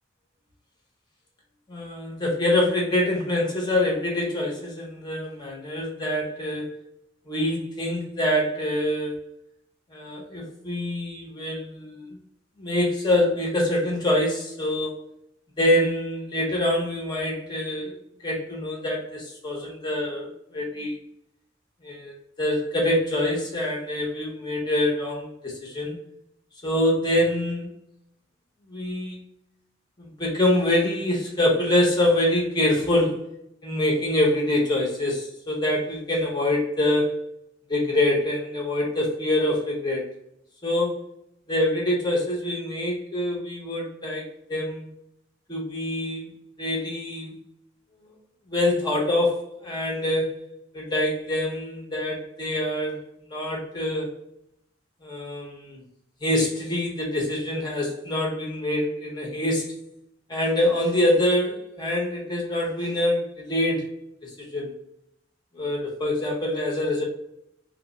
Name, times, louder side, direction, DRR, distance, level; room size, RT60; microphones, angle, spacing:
voice 1, 1.7-6.7 7.3-9.2 9.9-12.2 12.6-15.0 15.6-18.0 18.2-20.9 21.8-25.9 26.6-27.7 28.7-29.2 30.0-33.2 33.6-37.2 37.7-40.1 40.6-41.0 41.5-44.9 45.5-46.3 46.6-47.4 48.5-50.4 50.7-53.0 53.3-54.1 55.0-55.8 56.2-59.8 60.3-63.9 64.2-64.7 65.5-67.0, left 1 dB, 25° left, -2 dB, 0.7 m, -25 dB
3.2 x 2.1 x 3.7 m, 0.78 s
head